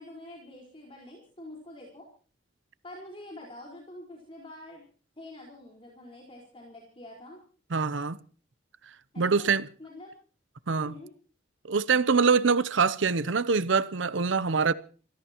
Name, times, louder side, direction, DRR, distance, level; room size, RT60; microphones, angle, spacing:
voice 1, 0.0-2.0 2.8-4.8 5.2-7.4 9.1-9.5 9.8-10.1 10.8-11.1, left 1 dB, 30° left, 4.6 m, -46 dB
voice 2, 7.7-8.2 9.2-9.7 10.7-10.9 11.7-14.7, right 5 dB, 80° right, 0.7 m, -24 dB
28.0 x 16.5 x 3.0 m
head